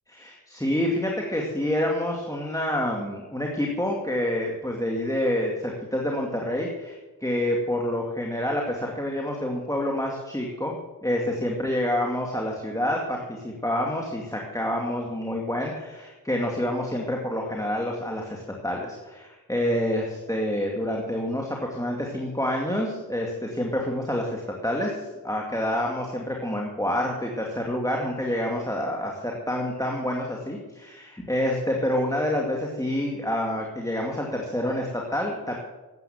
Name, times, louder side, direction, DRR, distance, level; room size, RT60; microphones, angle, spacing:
voice 1, 0.1-35.6, left 1 dB, 10° left, -1 dB, 2.4 m, -28 dB
12.0 x 9.0 x 8.0 m, 1.2 s
cardioid pair, 45°, 39 cm